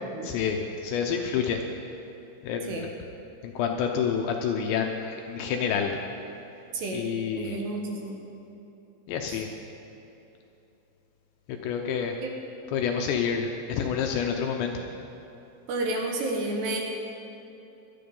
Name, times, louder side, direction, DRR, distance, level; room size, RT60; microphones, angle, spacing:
voice 1, 0.2-1.6 2.4-2.9 3.4-6.0 6.9-7.6 9.1-9.5 11.6-12.1 12.7-14.7, left 7 dB, 80° left, 2 dB, 2.7 m, -28 dB
voice 2, 6.7-7.1 7.3-8.2 9.3-9.4 12.2-12.3 15.7-16.8, right 2 dB, 70° right, 1 dB, 3.0 m, -31 dB
18.0 x 12.5 x 5.4 m, 2.9 s
omnidirectional pair, 5.7 m